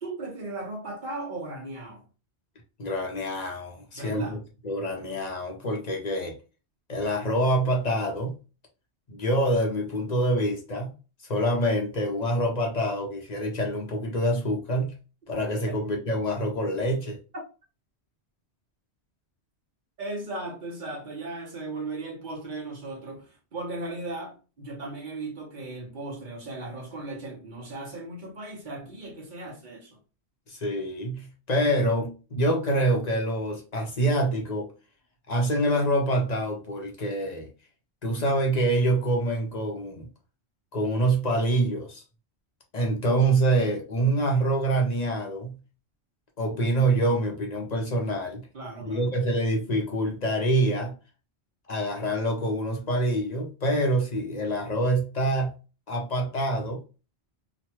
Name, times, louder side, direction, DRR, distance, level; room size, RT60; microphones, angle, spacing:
voice 1, 0.0-2.0 3.9-4.4 15.7-15.8 20.0-30.0 48.5-49.1, right 2 dB, 50° right, 1.0 m, -36 dB
voice 2, 2.8-4.4 4.6-6.4 6.9-8.4 9.1-10.9 11.3-15.0 15.3-17.2 30.5-34.7 35.3-37.5 38.0-40.1 40.7-42.0 42.7-45.6 46.4-48.4 48.8-50.9 51.7-55.5 55.9-56.8, right 1 dB, 45° left, 0.7 m, -26 dB
3.1 x 2.2 x 2.9 m
omnidirectional pair, 1.1 m